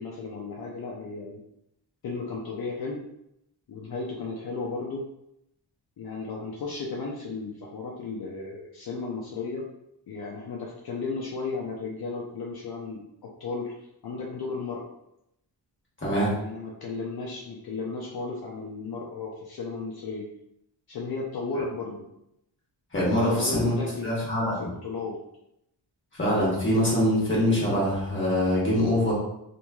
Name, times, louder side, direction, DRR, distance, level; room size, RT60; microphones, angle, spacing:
voice 1, 0.0-1.4 2.0-3.0 3.7-5.1 6.0-9.7 10.1-13.0 13.4-13.7 14.0-14.8 16.3-20.3 20.9-22.1 23.2-24.1 24.6-25.2, left 4 dB, 60° left, -3 dB, 0.5 m, -34 dB
voice 2, 16.0-16.3 22.9-23.7 24.0-24.7 26.1-29.1, left 1 dB, 25° left, -5 dB, 1.2 m, -24 dB
3.0 x 2.6 x 2.3 m, 0.80 s
wide cardioid pair, 110°, 43 cm